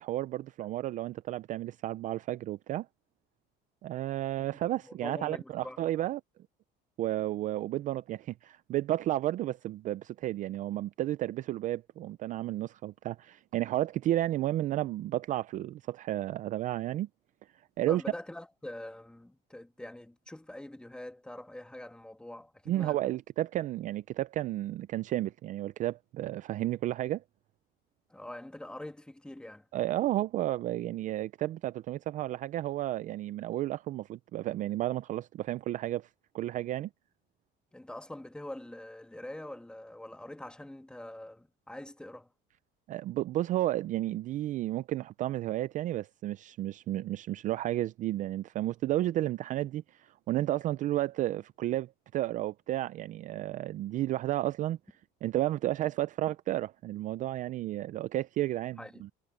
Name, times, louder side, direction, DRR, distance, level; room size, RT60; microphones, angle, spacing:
voice 1, 0.0-2.9 3.8-6.2 7.0-17.1 17.8-18.0 22.7-27.2 29.7-36.1 36.3-36.9 42.9-54.8 55.2-59.1, right 14 dB, 40° right, 0.4 m, -32 dB
voice 2, 4.4-5.8 17.9-23.1 28.1-29.7 37.7-42.3 58.8-59.0, left 1 dB, 5° left, 2.0 m, -44 dB
cardioid pair, 160°, 20 cm